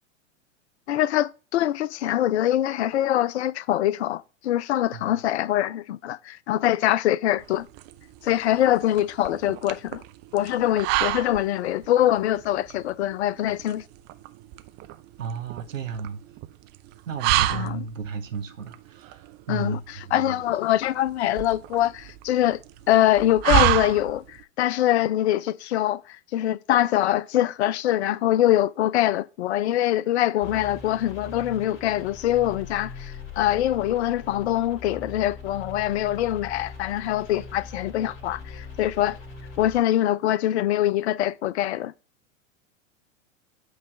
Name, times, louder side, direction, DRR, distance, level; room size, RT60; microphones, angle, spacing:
voice 1, 0.9-7.7 8.2-10.0 10.3-13.8 17.5-17.8 19.5-22.6 22.9-39.2 39.6-41.9, left 13 dB, 55° left, 0.5 m, -24 dB
sound 1, 7.4-24.4, right 14 dB, 25° right, 0.5 m, -29 dB
voice 2, 15.2-16.2 17.1-20.4, right 6 dB, 75° right, 1.1 m, -34 dB
sound 2, 30.4-39.8, left 4 dB, 30° left, 2.4 m, -41 dB
8.0 x 3.2 x 5.9 m
figure-of-eight pair, 95°, 39 cm